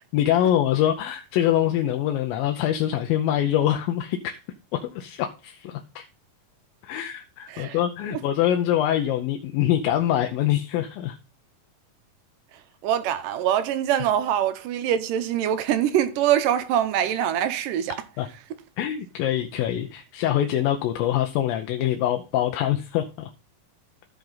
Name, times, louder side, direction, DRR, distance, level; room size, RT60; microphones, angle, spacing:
voice 1, 0.1-4.4 4.7-6.1 6.8-11.2 17.9-18.3 18.8-23.3, left 11 dB, 90° left, 2.5 m, -24 dB
voice 2, 12.8-18.0, right 10 dB, 80° right, 2.3 m, -24 dB
14.5 x 5.1 x 4.0 m
omnidirectional pair, 4.0 m